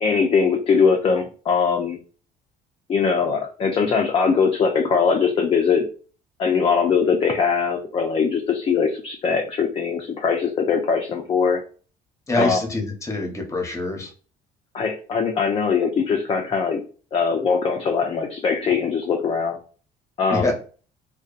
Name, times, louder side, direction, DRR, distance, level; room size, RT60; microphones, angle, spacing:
voice 1, 0.0-2.0 2.9-5.9 6.4-11.6 12.3-12.6 14.7-16.8 17.1-19.6 20.2-20.5, left 5 dB, 35° left, 2 dB, 0.4 m, -21 dB
voice 2, 12.3-14.1 20.3-20.5, left 2 dB, 15° left, 2 dB, 0.8 m, -25 dB
2.8 x 2.2 x 2.4 m, 0.39 s
cardioid pair, 110°, 17 cm